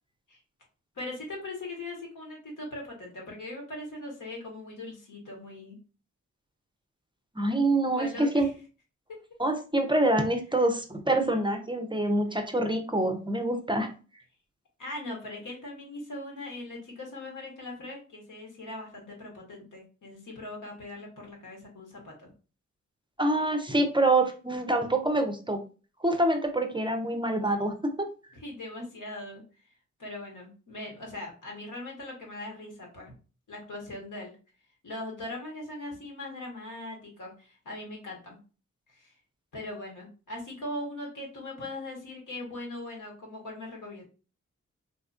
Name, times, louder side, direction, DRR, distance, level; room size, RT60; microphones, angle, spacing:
voice 1, 0.9-5.8 7.9-8.5 10.6-10.7 14.8-22.3 28.3-29.4 30.0-33.1 33.5-34.4 34.8-38.4 38.9-39.2 39.5-44.1, left 2 dB, 70° left, -1 dB, 1.2 m, -40 dB
voice 2, 7.4-8.5 9.4-13.9 23.2-25.6 26.0-28.1, right 1 dB, 15° right, 5 dB, 0.5 m, -26 dB
2.8 x 2.4 x 2.4 m, 0.35 s
cardioid pair, 45°, 32 cm